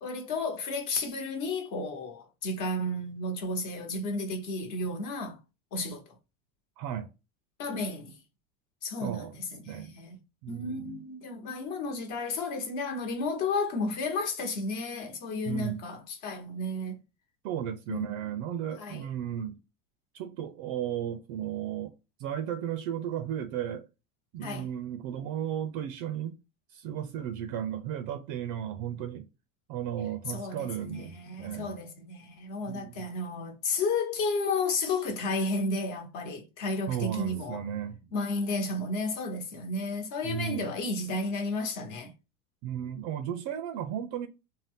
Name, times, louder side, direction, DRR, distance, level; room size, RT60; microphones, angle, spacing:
voice 1, 0.0-5.4 5.7-6.0 7.6-8.2 8.8-10.2 10.5-17.0 17.9-18.0 18.8-19.0 24.4-24.7 30.3-37.6 38.1-42.1, left 3 dB, 50° left, 1.0 m, -32 dB
voice 2, 6.8-7.1 9.0-9.3 9.7-10.0 10.4-11.0 15.5-15.8 17.4-19.6 20.1-21.9 22.2-23.9 24.3-26.3 26.7-29.3 29.7-31.8 32.7-33.1 36.9-38.0 40.2-40.7 42.6-44.3, right 10 dB, 50° right, 0.4 m, -34 dB
2.7 x 2.1 x 3.4 m
supercardioid pair, 110°, 40 cm